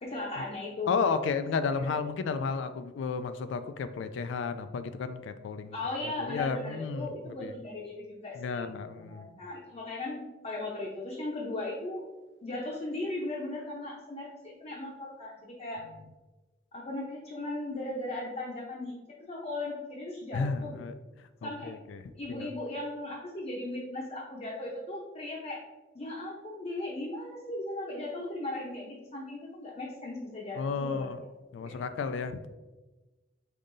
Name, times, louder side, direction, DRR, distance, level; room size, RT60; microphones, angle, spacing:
voice 1, 0.0-1.3 1.8-1.9 5.7-12.1 12.4-15.8 16.7-20.8 21.4-21.8 22.1-25.6 25.9-31.1 31.6-31.8, left 2 dB, 35° left, -4 dB, 0.7 m, -37 dB
voice 2, 0.9-5.7 6.0-7.1 7.4-7.5 8.4-9.2 20.3-20.9 21.4-22.0 22.3-22.5 30.6-31.2 31.5-32.4, left 5 dB, 70° left, 10 dB, 0.3 m, -32 dB
5.4 x 3.8 x 2.6 m, 1.2 s
head